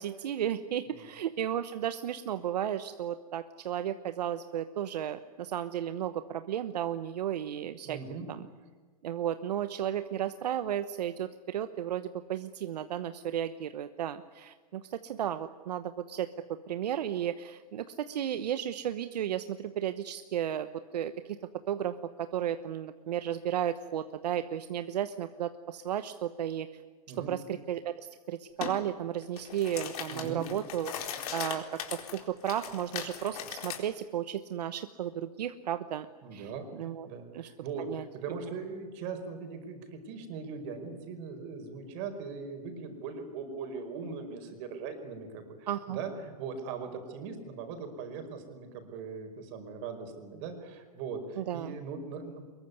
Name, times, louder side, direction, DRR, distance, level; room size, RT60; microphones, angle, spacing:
voice 1, 0.0-8.0 8.3-8.4 9.0-16.3 16.7-20.7 20.9-21.4 21.7-26.8 27.3-30.9 31.3-36.1 36.3-37.1 37.3-37.5 37.9-38.0 45.7-46.0 51.4-51.7, right 10 dB, 80° right, 11 dB, 1.1 m, -34 dB
voice 2, 7.8-8.3 27.1-27.3 30.1-30.5 36.2-36.7 37.0-52.4, right 5 dB, 50° right, 6 dB, 5.2 m, -40 dB
sound 1, 28.6-28.8 29.2-33.8, left 9 dB, 65° left, 4.2 m, -39 dB
23.5 x 22.0 x 9.6 m, 1.4 s
hypercardioid pair, 135°, 20 cm